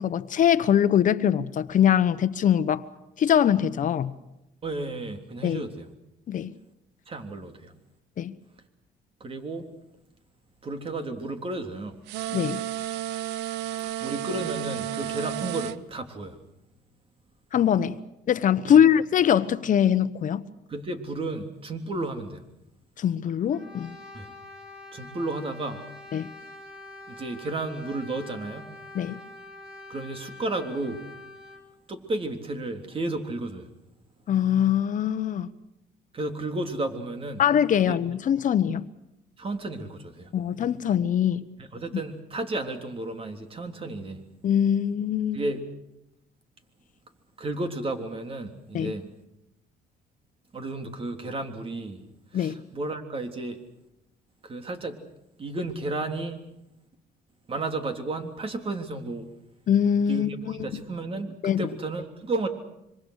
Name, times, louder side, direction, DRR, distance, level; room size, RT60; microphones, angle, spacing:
voice 1, 0.0-2.9 3.2-4.1 5.4-5.6 6.3-6.5 8.2-8.4 12.3-12.6 17.5-18.0 18.3-20.5 23.0-24.0 26.1-26.3 28.9-29.2 34.3-35.5 37.4-38.9 40.3-41.4 44.4-45.4 48.7-48.9 52.3-52.6 59.7-60.8 61.4-61.7, left 9 dB, 50° left, 1.2 m, -23 dB
voice 2, 4.6-5.9 7.1-7.7 9.2-9.7 10.6-12.0 13.8-16.4 18.7-18.8 20.7-22.4 24.1-24.3 24.9-25.8 27.1-28.7 29.9-31.0 31.9-33.7 36.1-37.4 37.7-38.0 39.4-40.3 41.6-44.2 45.3-45.7 47.4-49.1 50.5-52.0 52.3-53.6 54.4-55.0 55.4-56.4 57.5-59.3 60.1-62.5, right 2 dB, 35° right, 3.4 m, -33 dB
sound 1, 12.1-15.8, right 12 dB, 90° right, 0.8 m, -32 dB
Brass instrument, 23.5-31.7, left 2 dB, 5° right, 5.5 m, -45 dB
26.0 x 25.0 x 6.6 m
cardioid pair, 110°, 17 cm